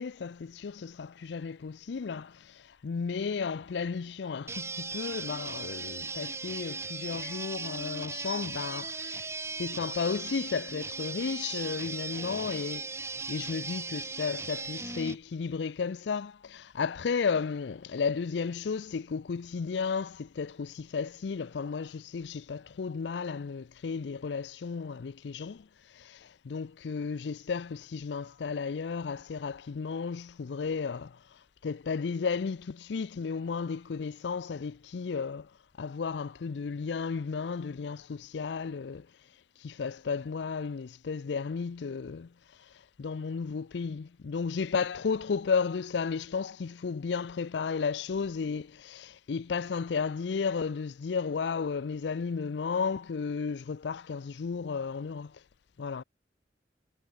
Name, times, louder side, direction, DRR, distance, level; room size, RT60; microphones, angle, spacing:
voice 1, 0.0-9.3 9.6-25.7 25.9-31.2 31.6-35.5 35.8-39.1 39.6-42.3 43.0-55.4 55.8-56.0, left 5 dB, 75° left, 0.4 m, -33 dB
sound 1, 4.5-15.2, right 4 dB, 15° right, 2.2 m, -38 dB
head